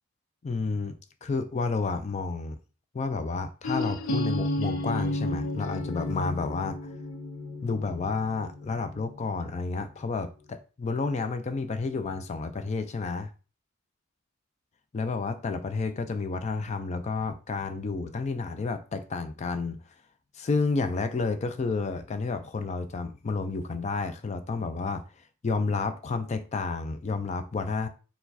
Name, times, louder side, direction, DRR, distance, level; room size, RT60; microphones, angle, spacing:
voice 1, 0.4-0.9 1.2-2.6 2.9-6.9 7.6-13.3 14.9-19.8 20.3-25.0 25.4-27.9, left 4 dB, 35° left, 0.4 m, -30 dB
sound 1, 3.6-9.4, left 1 dB, 85° left, 0.5 m, -32 dB
4.6 x 2.2 x 4.0 m
head